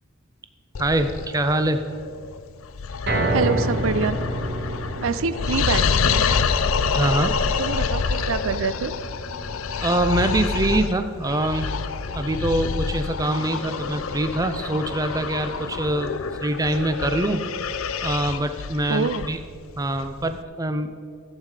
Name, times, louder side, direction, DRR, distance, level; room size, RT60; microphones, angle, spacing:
sound 1, 0.7-20.4, left 5 dB, 70° left, 0.5 m, -27 dB
voice 1, 0.8-1.8 6.9-7.4 9.8-11.7 12.1-16.1 16.4-17.5 18.0-19.4 19.8-21.0, right 1 dB, 15° right, 9 dB, 0.5 m, -24 dB
sound 2, 3.1-15.3 15.7-15.8 16.3-16.4, right 1 dB, 50° right, 2.2 m, -31 dB
voice 2, 3.3-4.2 5.0-6.3 7.6-8.9 18.9-19.3, right 5 dB, 70° right, 13 dB, 0.5 m, -26 dB
14.5 x 8.4 x 4.9 m, 2.1 s
head